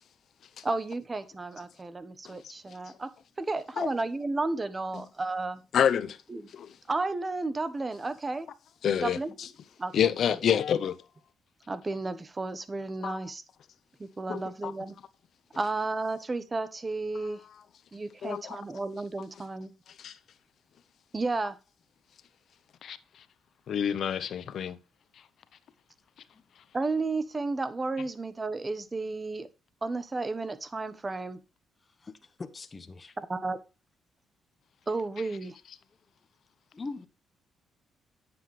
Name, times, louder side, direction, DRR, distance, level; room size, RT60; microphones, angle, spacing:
voice 1, 0.6-3.1 3.4-5.6 6.3-6.5 6.9-8.5 9.0-9.3 9.8-9.9 10.2-10.3 11.7-13.4 14.0-15.0 15.5-17.4 17.9-19.7 21.1-21.6 26.7-29.5 29.8-31.4 33.3-33.6 34.9-35.6, right 3 dB, 25° right, 1.1 m, -32 dB
voice 2, 5.7-6.2 6.5-6.7 8.8-9.2 9.9-11.0 13.0-13.2 14.3-14.7 18.2-18.6 20.0-20.2 22.8-23.0 23.7-24.8, left 8 dB, 65° left, 0.7 m, -28 dB
voice 3, 31.8-33.2 36.7-37.1, left 3 dB, 30° left, 1.0 m, -42 dB
9.1 x 7.9 x 3.2 m
cardioid pair, 90°, 0 cm